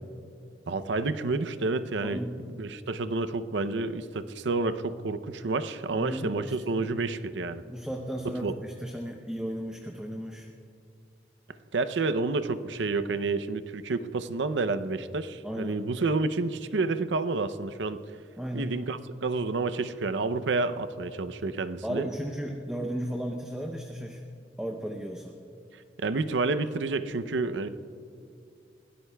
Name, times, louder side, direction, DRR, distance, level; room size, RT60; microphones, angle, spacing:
voice 1, 0.7-2.3 2.5-7.6 8.4-8.5 11.7-18.0 18.5-22.1 26.0-27.7, right 3 dB, 85° right, 12 dB, 0.6 m, -29 dB
voice 2, 2.0-2.3 5.9-6.6 7.7-10.5 15.4-15.8 18.4-18.7 21.8-24.2 24.6-25.3, equal, 5° right, 2 dB, 0.6 m, -35 dB
22.5 x 17.0 x 2.3 m, 2.5 s
head